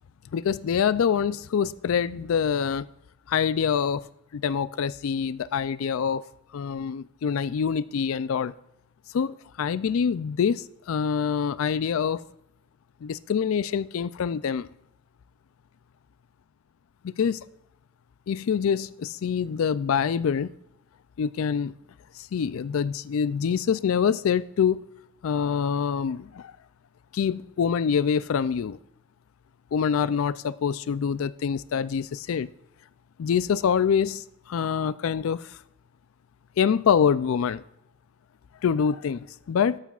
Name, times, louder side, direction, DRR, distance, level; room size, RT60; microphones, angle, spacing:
voice 1, 0.3-2.9 3.3-4.0 4.3-6.2 6.5-8.5 9.1-12.2 13.0-14.7 17.0-17.4 18.3-20.5 21.2-21.7 22.3-24.8 25.2-26.5 27.1-28.8 29.7-32.5 33.2-35.5 36.6-37.6 38.6-39.8, left 7 dB, 70° left, 0.4 m, -25 dB
13.5 x 11.5 x 2.4 m
head